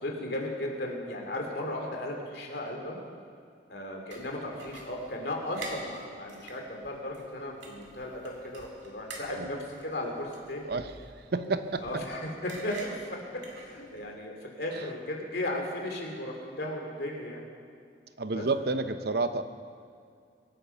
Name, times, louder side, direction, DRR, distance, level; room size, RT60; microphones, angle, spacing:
voice 1, 0.0-3.0 3.7-10.7 11.8-13.2 13.5-17.4 18.3-18.5, left 1 dB, 60° left, 1 dB, 2.7 m, -36 dB
sound 1, 4.1-14.1, right 2 dB, 80° right, 2.2 m, -48 dB
voice 2, 11.3-11.8 18.2-19.4, right 3 dB, 55° right, 10 dB, 0.8 m, -29 dB
24.0 x 9.2 x 5.7 m, 2.3 s
head